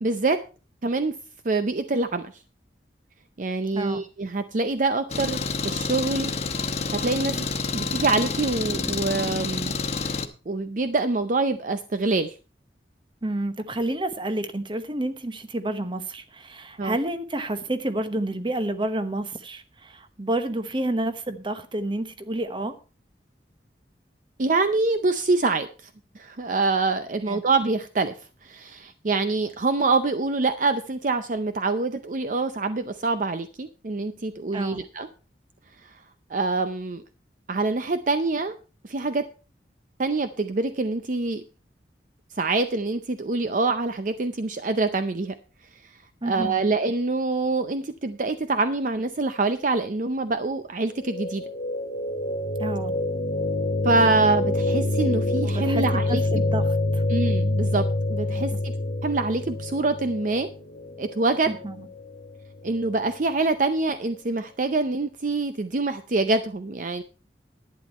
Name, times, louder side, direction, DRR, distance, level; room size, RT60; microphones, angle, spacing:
voice 1, 0.0-0.4 0.8-1.1 1.4-2.2 3.4-7.5 7.7-9.7 10.5-12.4 16.8-16.9 24.4-25.9 26.1-28.1 28.4-35.1 35.8-35.9 36.3-37.0 37.5-38.5 38.8-39.2 40.0-41.4 42.3-45.3 46.2-51.4 53.8-56.2 57.1-58.7 59.0-60.5 61.0-61.5 62.6-67.0, right 3 dB, 45° right, 0.6 m, -25 dB
voice 2, 3.7-4.0 13.2-22.8 27.3-27.4 34.5-34.8 46.2-46.6 52.6-52.9 55.4-57.0 58.3-58.5 61.5-61.9, right 1 dB, 30° right, 1.0 m, -29 dB
Engine, 5.1-10.2, left 4 dB, 35° left, 1.1 m, -28 dB
sound 1, 51.0-63.0, left 1 dB, 80° left, 1.5 m, -27 dB
11.5 x 9.8 x 4.2 m
head